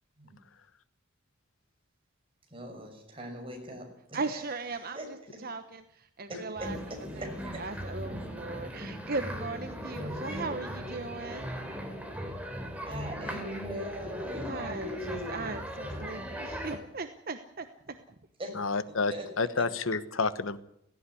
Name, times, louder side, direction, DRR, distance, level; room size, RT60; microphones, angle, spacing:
voice 1, 2.5-4.2 4.8-5.1 6.3-7.6 12.8-15.5 18.4-18.5 19.1-19.2 19.6-19.7, equal, 25° right, 2 dB, 6.2 m, -40 dB
voice 2, 4.1-5.2 5.4-6.8 7.2-7.3 7.6-11.5 14.4-17.9, right 3 dB, 45° right, 8 dB, 1.1 m, -38 dB
sound 1, 6.6-16.8, equal, 5° right, 3.3 m, -38 dB
voice 3, 18.5-20.6, left 4 dB, 80° left, 14 dB, 1.1 m, -29 dB
17.0 x 16.5 x 9.9 m, 0.74 s
head